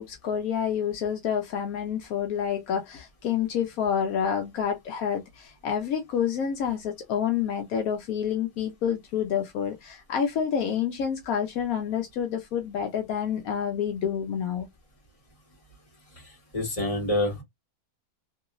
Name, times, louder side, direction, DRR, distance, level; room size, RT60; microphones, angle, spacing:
voice 1, 0.0-14.7, left 8 dB, 75° left, 1.1 m, -28 dB
voice 2, 16.2-17.4, left 1 dB, 25° left, 1.7 m, -28 dB
2.9 x 2.9 x 2.4 m
omnidirectional pair, 1.5 m